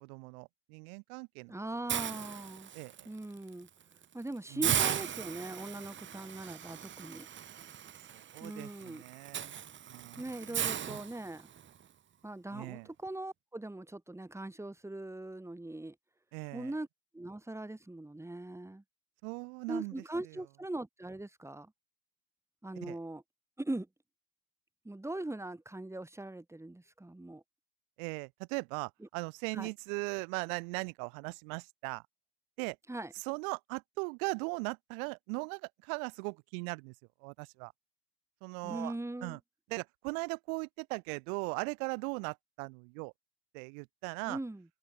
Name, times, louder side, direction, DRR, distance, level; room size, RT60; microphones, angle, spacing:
voice 1, 0.0-1.5 2.7-3.1 4.5-4.8 8.1-9.6 9.9-10.8 12.5-12.9 16.3-16.7 19.2-19.9 20.2-20.4 22.8-23.0 28.0-32.0 32.6-32.8 33.1-36.9 37.2-37.7 38.4-38.9 39.2-39.4 39.7-43.1 43.5-44.4, right 36 dB, 65° right, 2.8 m, -39 dB
voice 2, 1.5-2.7 3.0-3.7 4.1-7.3 8.4-9.0 10.2-11.5 12.2-15.9 16.5-16.9 17.1-18.8 19.7-21.7 22.6-23.2 23.6-23.9 24.8-27.4 29.5-29.7 32.9-33.1 38.6-39.4 44.3-44.6, right 2 dB, 5° right, 6.8 m, -41 dB
Hiss, 1.9-3.0 3.5-3.7 4.0-4.1 4.6-11.7, right 9 dB, 25° right, 1.2 m, -37 dB
supercardioid pair, 110°, 46 cm